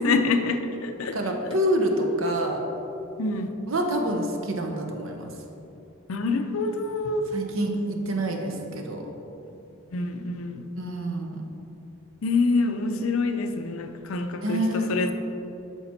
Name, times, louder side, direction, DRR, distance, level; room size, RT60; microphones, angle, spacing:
voice 1, 0.0-1.2 3.2-3.5 6.1-7.3 9.9-10.7 12.2-15.1, left 3 dB, 75° left, 7 dB, 0.6 m, -26 dB
voice 2, 1.1-2.6 3.7-5.3 7.3-9.1 10.8-11.4 14.4-14.9, right 1 dB, 65° right, 2 dB, 0.9 m, -27 dB
8.4 x 5.9 x 4.3 m, 2.8 s
head